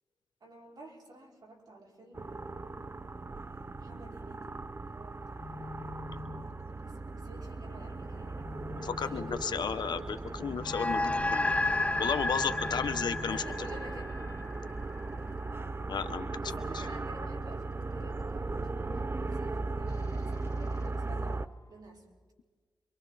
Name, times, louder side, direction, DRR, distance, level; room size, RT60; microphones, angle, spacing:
voice 1, 0.4-2.8 3.5-6.1 6.8-8.5 9.0-9.7 10.8-11.2 12.4-12.7 13.3-14.2 16.4-22.1, right 1 dB, 65° right, -1 dB, 5.3 m, -52 dB
sound 1, 2.1-21.5, right 3 dB, 35° right, 0.7 m, -38 dB
sound 2, 5.4-14.4 16.4-18.4 19.9-21.8, left 4 dB, 45° left, 1.8 m, -48 dB
voice 2, 8.8-11.5 12.0-13.4 15.9-16.8, left 6 dB, 80° left, 10 dB, 1.1 m, -34 dB
sound 3, 10.6-15.3, left 2 dB, 15° left, 0.5 m, -32 dB
28.5 x 24.5 x 4.2 m, 1.5 s
cardioid pair, 60°, 7 cm